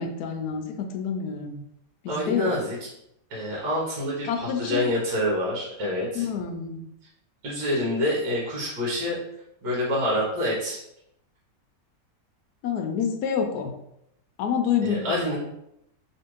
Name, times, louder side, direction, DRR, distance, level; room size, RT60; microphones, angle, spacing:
voice 1, 0.0-1.6 2.0-2.5 4.3-4.8 6.1-6.8 12.6-13.7 14.4-15.4, left 7 dB, 70° left, 5 dB, 1.0 m, -28 dB
voice 2, 2.1-2.9 3.3-6.3 7.4-9.2 9.6-10.8 14.8-15.4, left 1 dB, 70° right, -5 dB, 1.7 m, -27 dB
3.3 x 3.1 x 3.0 m, 0.79 s
omnidirectional pair, 1.9 m